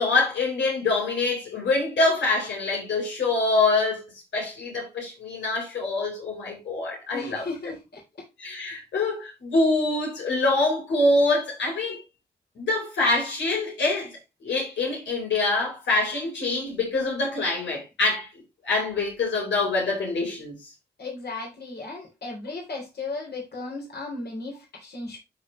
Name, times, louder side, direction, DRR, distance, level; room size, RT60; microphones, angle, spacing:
voice 1, 0.0-4.0 4.3-7.4 8.4-12.0 12.6-14.1 14.4-18.3 18.6-20.6, left 2 dB, 85° left, 4.2 m, -25 dB
voice 2, 7.1-8.0 21.0-25.2, left 3 dB, 65° left, 3.6 m, -35 dB
12.5 x 4.5 x 3.1 m
cardioid pair, 55°, 18 cm